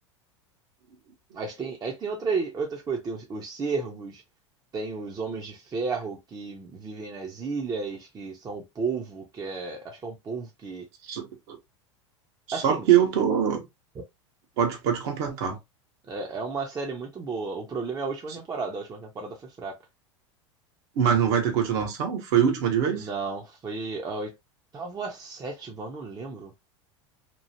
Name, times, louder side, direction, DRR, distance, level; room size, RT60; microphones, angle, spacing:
voice 1, 1.3-4.2 4.7-10.8 12.5-12.9 14.0-14.1 16.1-19.8 23.0-24.3 24.7-26.5, right 4 dB, 25° right, 0.7 m, -33 dB
voice 2, 11.0-11.6 12.5-13.6 14.6-15.6 20.9-23.1, right 8 dB, 60° right, 1.1 m, -23 dB
3.0 x 2.4 x 2.7 m
hypercardioid pair, 85°, 16 cm